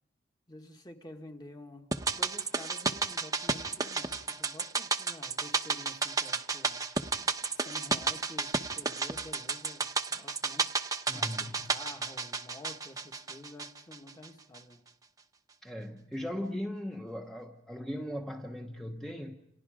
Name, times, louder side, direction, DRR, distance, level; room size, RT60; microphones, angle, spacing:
voice 1, 0.5-6.8 7.5-10.8 11.1-14.8, left 1 dB, 20° left, 1.7 m, -50 dB
sound 1, 1.9-14.3 14.5-14.6, right 4 dB, 20° right, 0.9 m, -32 dB
voice 2, 11.1-11.8 15.6-19.4, equal, ahead, 1.0 m, -38 dB
29.5 x 28.5 x 5.1 m
head